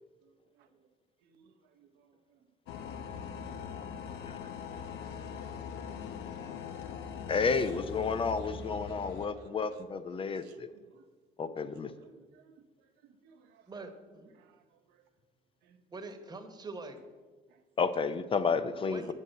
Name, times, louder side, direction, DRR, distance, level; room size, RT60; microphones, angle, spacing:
voice 1, 0.2-0.7 1.2-2.4 3.1-4.7 5.2-7.2 7.5-7.7 8.9-9.1 9.4-9.7 10.4-11.0 11.9-13.7 14.4-14.6 14.9-15.0 15.6-15.8 17.5-17.6, right 8 dB, 90° right, 6 dB, 0.8 m, -63 dB
sound 1, 2.7-9.3, left 7 dB, 85° left, 0.7 m, -41 dB
voice 2, 7.3-10.7 11.4-11.9 17.8-19.1, left 5 dB, 30° left, 12 dB, 0.5 m, -31 dB
voice 3, 13.7-14.3 15.9-17.0 18.9-19.1, right 3 dB, 25° right, 7 dB, 1.1 m, -44 dB
7.8 x 5.4 x 7.3 m, 1.4 s
cardioid pair, 110°, 17 cm